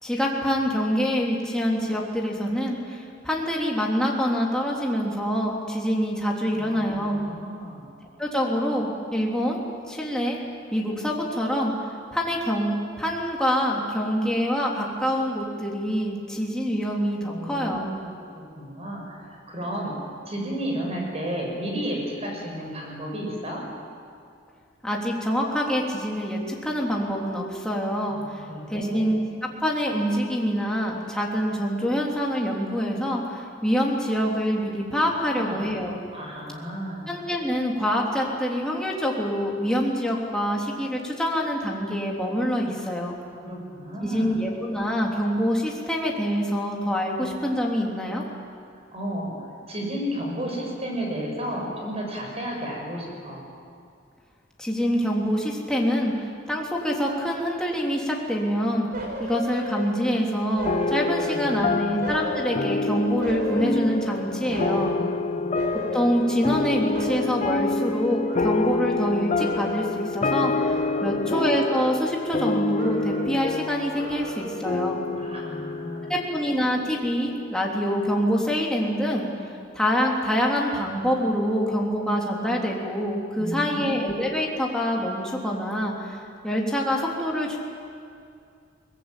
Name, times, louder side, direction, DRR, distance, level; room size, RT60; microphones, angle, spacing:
voice 1, 0.0-7.2 8.2-9.6 9.9-10.4 10.7-11.7 12.1-17.9 24.8-28.4 28.7-29.2 29.6-36.0 37.1-43.2 44.0-48.2 54.6-56.1 56.5-58.9 59.2-65.0 65.9-75.0 76.1-79.3 79.7-86.2 86.4-87.6, equal, 5° left, -2 dB, 3.4 m, -25 dB
voice 2, 6.5-7.9 17.3-18.3 18.6-19.9 20.3-23.6 28.1-29.2 35.3-35.6 36.1-37.1 43.4-44.4 48.9-49.3 49.7-53.5 61.2-62.0 64.4-65.5 70.4-71.3 75.1-76.1 83.4-83.9, equal, 35° right, 0 dB, 6.8 m, -33 dB
sound 1, 58.9-60.2 60.6-61.7 62.0-64.1 64.5-65.1 65.5-66.7 66.9-69.1 69.4-70.0 70.5-71.3 71.6-72.5 72.7-73.5 73.9-74.7 75.1-75.2, right 1 dB, 55° right, 4.6 m, -36 dB
sound 2, 60.6-77.4, left 3 dB, 35° left, 0.6 m, -27 dB
23.0 x 20.5 x 9.1 m, 2.4 s
head